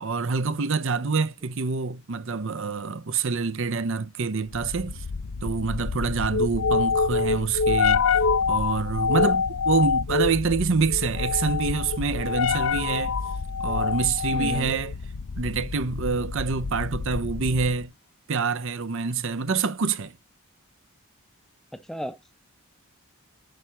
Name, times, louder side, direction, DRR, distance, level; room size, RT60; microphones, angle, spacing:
voice 1, 0.0-5.0 5.4-8.1 8.5-13.1 13.6-14.9 15.4-17.9 18.3-20.2, right 4 dB, 60° right, 0.7 m, -26 dB
sound 1, 4.5-17.9, left 5 dB, 65° left, 0.5 m, -26 dB
voice 2, 14.3-14.7 21.7-22.3, equal, ahead, 0.5 m, -34 dB
7.9 x 5.7 x 3.0 m
head